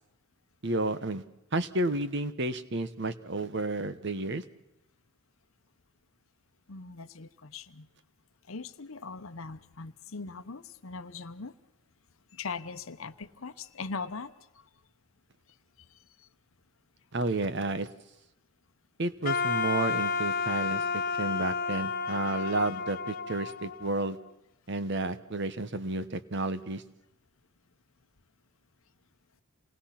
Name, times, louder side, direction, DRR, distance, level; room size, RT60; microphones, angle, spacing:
voice 1, 0.6-1.2 1.5-4.4 17.1-17.9 19.0-24.2 24.7-26.8, right 2 dB, 55° right, 13 dB, 1.1 m, -31 dB
voice 2, 6.7-7.9 8.5-11.5 12.3-14.6 15.8-15.9 16.2-16.3, left 4 dB, 70° left, 10 dB, 0.9 m, -40 dB
Wind instrument woodwind instrument, 19.2-24.3, left 5 dB, 40° left, 0.9 m, -31 dB
28.0 x 20.0 x 5.9 m, 0.89 s
head